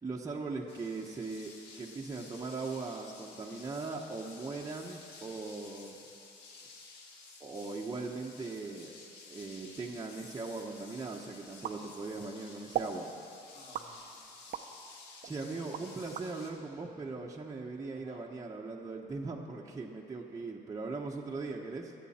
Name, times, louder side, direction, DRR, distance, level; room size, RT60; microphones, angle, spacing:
voice 1, 0.0-6.0 7.4-8.9 9.2-13.1 15.2-21.9, right 3 dB, 20° right, -2 dB, 1.1 m, -39 dB
Electricity Arcs Sparks long, 0.7-16.5, left 3 dB, 80° left, 1.7 m, -53 dB
sound 1, 11.6-12.3 12.7-13.0 13.7-14.7 15.2-16.3, right 10 dB, 55° right, 0.7 m, -37 dB
voice 2, 13.5-14.9 15.4-16.1 17.9-18.3, left 2 dB, 60° left, -2 dB, 3.0 m, -58 dB
23.0 x 8.4 x 4.3 m, 2.8 s
cardioid pair, 110°, 17 cm